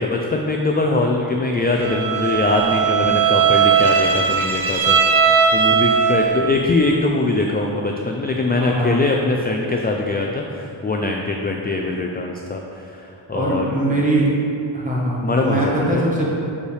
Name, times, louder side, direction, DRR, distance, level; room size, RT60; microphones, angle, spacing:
voice 1, 0.0-5.0 5.5-13.7 15.2-16.0, left 2 dB, 20° left, 1 dB, 0.3 m, -22 dB
Bowed string instrument, 1.8-6.5, right 6 dB, 80° right, 0.6 m, -18 dB
voice 2, 8.5-9.0 13.3-14.3 14.7-16.3, right 1 dB, 15° right, -5 dB, 1.4 m, -21 dB
6.3 x 5.3 x 3.3 m, 2.6 s
wide cardioid pair, 85°, 48 cm